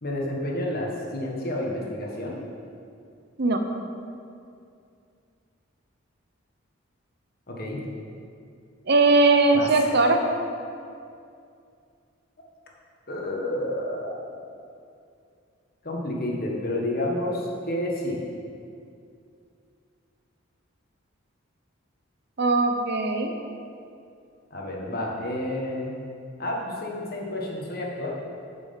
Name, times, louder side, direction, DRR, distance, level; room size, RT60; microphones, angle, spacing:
voice 1, 0.0-2.4 7.5-7.8 9.5-10.0 13.1-14.3 15.8-18.2 24.5-25.9 26.4-28.1, left 1 dB, 50° left, -1 dB, 1.5 m, -30 dB
voice 2, 8.9-10.3 22.4-23.3, right 3 dB, 55° right, 5 dB, 0.7 m, -20 dB
9.0 x 6.1 x 5.8 m, 2.4 s
head